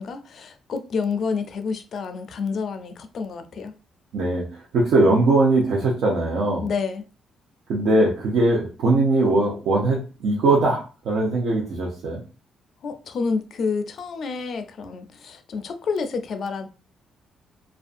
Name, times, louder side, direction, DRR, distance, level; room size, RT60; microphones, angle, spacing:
voice 1, 0.0-3.7 6.6-7.1 12.8-16.7, left 5 dB, 60° left, 0.4 m, -29 dB
voice 2, 4.1-6.7 7.7-12.2, right 2 dB, 75° right, 0.7 m, -20 dB
2.5 x 2.2 x 2.4 m
cardioid pair, 90°, 0 cm